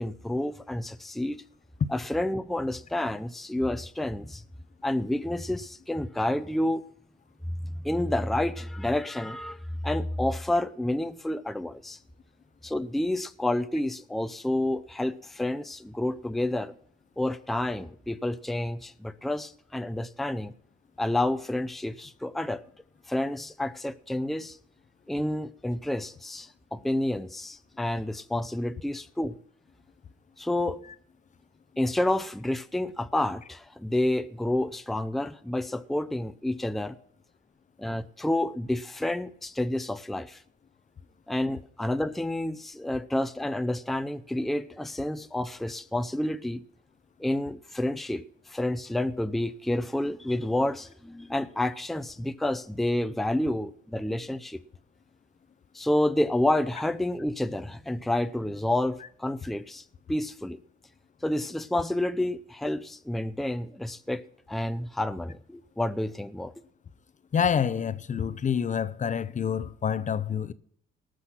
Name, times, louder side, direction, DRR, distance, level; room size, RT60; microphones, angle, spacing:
voice 1, 0.0-1.4 1.9-4.4 4.8-6.8 7.8-12.0 12.6-16.7 17.2-20.5 21.0-22.6 23.1-24.6 25.1-29.4 30.4-30.8 31.8-37.0 37.8-40.4 41.3-46.6 47.2-54.6 55.7-60.6 61.2-64.2 64.5-66.5, left 1 dB, ahead, 0.6 m, -29 dB
voice 2, 67.3-70.5, left 7 dB, 40° left, 0.6 m, -27 dB
18.5 x 6.3 x 5.7 m
cardioid pair, 90°, 20 cm